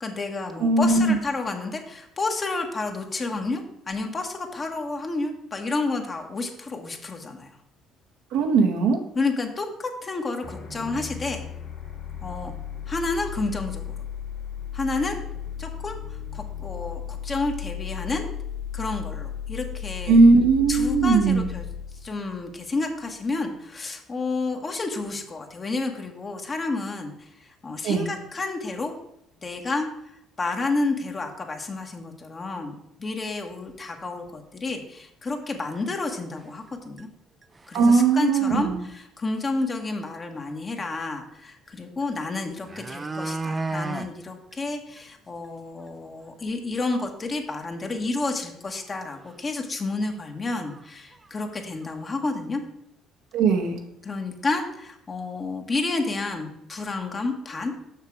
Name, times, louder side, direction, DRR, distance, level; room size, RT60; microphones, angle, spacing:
voice 1, 0.0-7.6 9.1-11.4 12.2-12.5 12.9-14.0 14.7-15.2 15.6-18.3 18.7-20.2 20.7-21.7 22.0-28.9 29.4-29.9 30.4-32.7 33.0-37.1 37.7-52.6 54.0-57.7, left 3 dB, 35° left, 4 dB, 1.4 m, -30 dB
voice 2, 0.6-1.2 8.3-9.0 20.1-21.5 27.8-28.1 37.7-38.8 53.3-53.8, right 4 dB, 75° right, 3 dB, 1.1 m, -19 dB
sound 1, 10.4-23.1, left 8 dB, 55° left, 2.3 m, -35 dB
sound 2, 33.7-33.8 34.3-34.4 34.7-34.8 35.8-35.9 36.4-36.7 37.0-37.1 37.4-37.8 39.2-39.3 39.6-39.7 42.0-42.1 42.5-44.1 44.5-44.6 45.0-45.1 45.4-45.5 45.9-46.0 48.8-48.9 49.2-49.4 50.1-50.2 50.6-50.9 51.1-51.9 52.3-52.4, right 3 dB, 30° right, 0.5 m, -33 dB
6.7 x 5.8 x 4.7 m, 0.79 s
supercardioid pair, 65°, 0 cm